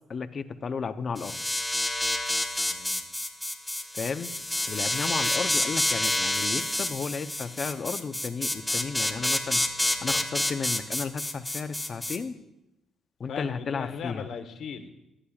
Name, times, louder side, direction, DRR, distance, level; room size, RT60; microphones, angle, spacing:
voice 1, 0.1-1.4 3.9-4.3 4.7-9.7 10.0-12.4 13.2-14.3, left 5 dB, 45° left, 11 dB, 0.6 m, -33 dB
sound 1, 1.2-12.2, left 1 dB, 5° left, 1.0 m, -28 dB
voice 2, 2.7-3.0 5.4-5.5 13.3-14.9, left 7 dB, 70° left, 7 dB, 1.0 m, -38 dB
15.0 x 10.0 x 2.4 m, 0.93 s
cardioid pair, 90°, 0 cm